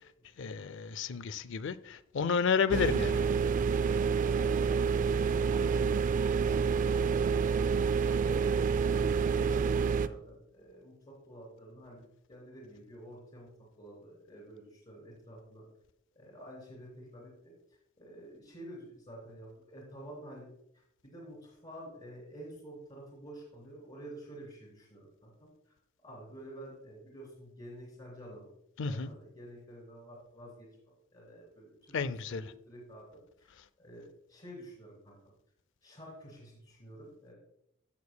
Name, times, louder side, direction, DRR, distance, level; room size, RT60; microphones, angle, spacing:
voice 1, 0.4-3.2 28.8-29.1 31.9-32.4, left 5 dB, 65° left, 0.4 m, -31 dB
sound 1, 2.7-10.1, right 6 dB, 40° right, 0.3 m, -28 dB
voice 2, 10.0-13.5 13.8-15.6 16.1-17.5 18.0-20.5 21.0-25.7 26.0-28.5 28.8-35.2 35.8-37.3, right 1 dB, 35° left, 3.0 m, -49 dB
15.5 x 6.6 x 2.2 m
head